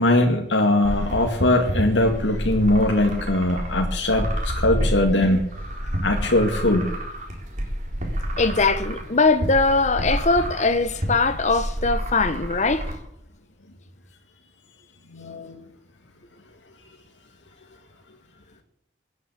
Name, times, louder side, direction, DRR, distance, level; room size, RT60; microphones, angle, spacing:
voice 1, 0.0-5.5 6.0-6.9 15.1-15.6, left 1 dB, 85° left, 2.2 m, -21 dB
sound 1, 0.8-12.9, equal, 45° right, 4.1 m, -29 dB
voice 2, 8.4-12.9, left 3 dB, 40° left, 1.3 m, -21 dB
17.5 x 9.6 x 8.5 m
head